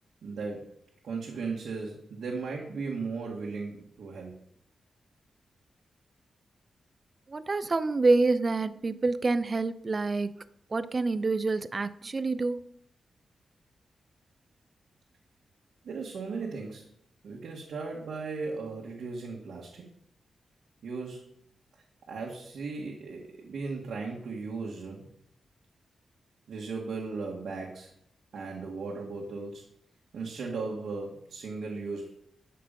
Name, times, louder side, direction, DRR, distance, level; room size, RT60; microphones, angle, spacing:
voice 1, 0.2-0.8 1.0-4.3 15.8-16.9 17.2-19.8 20.8-21.3 22.1-25.1 26.5-27.9 28.3-29.6 30.1-32.1, right 4 dB, 75° right, -2 dB, 1.8 m, -36 dB
voice 2, 7.3-10.3 10.7-12.6, right 3 dB, 30° right, 14 dB, 0.5 m, -27 dB
11.5 x 6.6 x 5.3 m, 0.71 s
wide cardioid pair, 175°, 0 cm